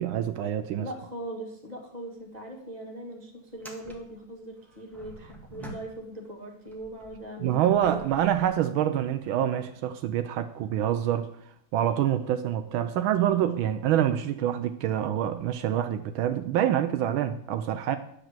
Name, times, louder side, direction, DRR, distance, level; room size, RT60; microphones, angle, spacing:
voice 1, 0.0-0.9 7.4-11.3 11.7-18.0, right 11 dB, 80° right, 9 dB, 1.4 m, -26 dB
voice 2, 0.8-8.0, right 1 dB, 20° right, 0 dB, 1.8 m, -40 dB
sound 1, 2.1-2.3 2.5-2.6 3.5-6.3 6.6-9.3 10.0-10.1 14.3-14.4 15.7-15.8, right 1 dB, ahead, 1.3 m, -48 dB
10.5 x 5.0 x 7.4 m, 0.71 s
omnidirectional pair, 2.2 m